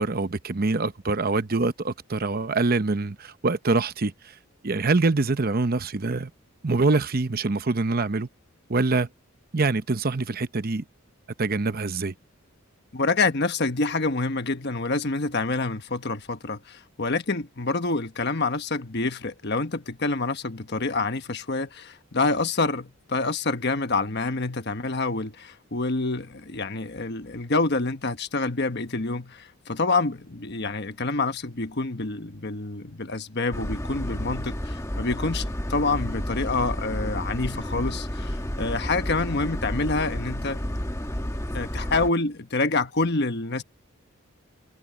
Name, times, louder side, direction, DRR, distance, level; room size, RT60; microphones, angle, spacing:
voice 1, 0.0-4.1 4.6-6.3 6.6-8.3 8.7-9.1 9.5-10.8 11.4-12.1, right 3 dB, 45° right, 0.8 m, -24 dB
voice 2, 12.9-40.6 41.5-43.6, left 3 dB, 50° left, 1.3 m, -27 dB
sound 1, 33.5-42.1, equal, 15° left, 1.3 m, -31 dB
head